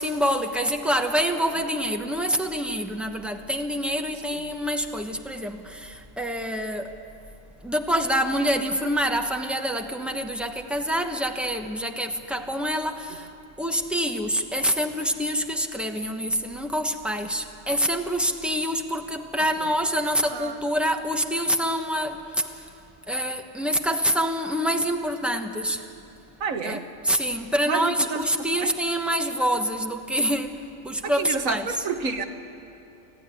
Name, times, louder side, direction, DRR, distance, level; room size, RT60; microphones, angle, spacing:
voice 1, 0.0-7.0 7.6-13.3 13.6-22.6 23.1-25.9 26.6-31.7, equal, ahead, 4 dB, 1.0 m, -26 dB
voice 2, 26.4-26.9 27.6-28.3 28.6-28.8 31.0-32.2, right 5 dB, 80° right, 7 dB, 1.6 m, -29 dB
25.5 x 15.5 x 9.7 m, 2.7 s
omnidirectional pair, 1.4 m